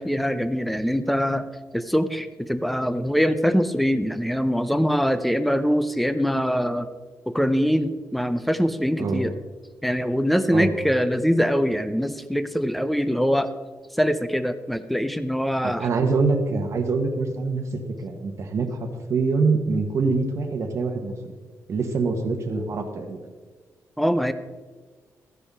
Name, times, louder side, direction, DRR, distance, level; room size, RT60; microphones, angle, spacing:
voice 1, 0.0-1.4 1.7-6.9 7.3-9.3 9.8-13.5 13.9-15.9 24.0-24.3, equal, ahead, 12 dB, 0.6 m, -23 dB
voice 2, 15.6-21.3 21.7-23.2, right 4 dB, 50° right, 2 dB, 1.3 m, -25 dB
13.5 x 9.8 x 3.7 m, 1.4 s
cardioid pair, 125°, 6 cm